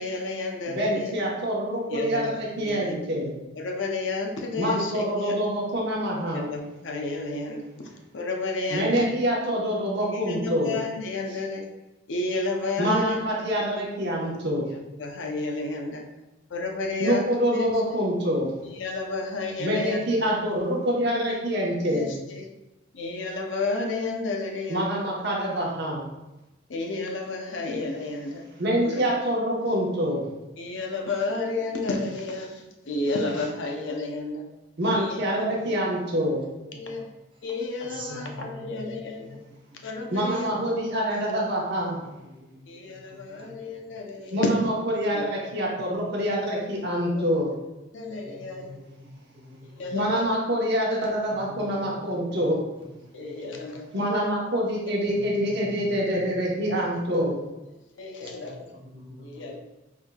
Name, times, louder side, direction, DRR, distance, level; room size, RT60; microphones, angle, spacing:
voice 1, 0.0-1.1 1.9-3.0 3.6-5.4 6.3-9.2 10.1-11.7 12.1-13.8 15.0-16.1 16.5-17.7 18.6-20.0 21.8-22.5 22.9-24.9 26.7-28.4 28.8-29.0 30.6-34.5 35.0-35.6 36.7-37.1 37.4-39.4 39.8-40.6 40.9-41.4 42.7-44.6 45.1-45.3 45.8-45.9 47.1-47.2 47.9-48.7 49.7-50.3 53.1-54.1 54.9-55.1 58.0-58.7 59.2-59.6, left 3 dB, 70° left, 2 dB, 0.6 m, -31 dB
voice 2, 0.7-3.3 4.6-6.5 8.7-10.7 12.8-14.6 17.0-18.5 19.6-22.1 24.7-26.0 28.6-30.2 34.8-36.4 40.1-42.0 44.3-47.5 49.9-52.6 53.9-57.3, equal, 60° right, -3 dB, 1.0 m, -26 dB
voice 3, 37.8-38.9 39.2-39.3 39.7-39.8 40.3-40.6 41.9-43.8 45.4-45.8 46.2-46.3 46.7-46.8 48.2-49.0 49.3-49.9 51.3-52.4 53.2-53.7 55.1-56.7 58.2-58.5 58.8-59.6, equal, 25° right, -2 dB, 0.8 m, -46 dB
4.6 x 3.6 x 2.3 m, 1.0 s
head